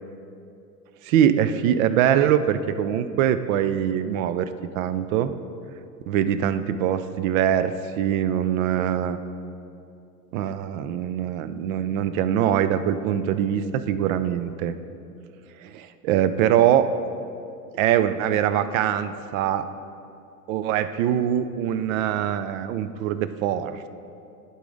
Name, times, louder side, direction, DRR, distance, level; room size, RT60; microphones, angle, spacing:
voice 1, 1.0-4.5 4.8-5.3 6.1-9.2 10.3-14.7 15.6-16.9 17.7-19.7 20.5-23.9, right 10 dB, 60° right, 12 dB, 0.5 m, -23 dB
11.0 x 3.9 x 3.8 m, 2.6 s
hypercardioid pair, 90°, 48 cm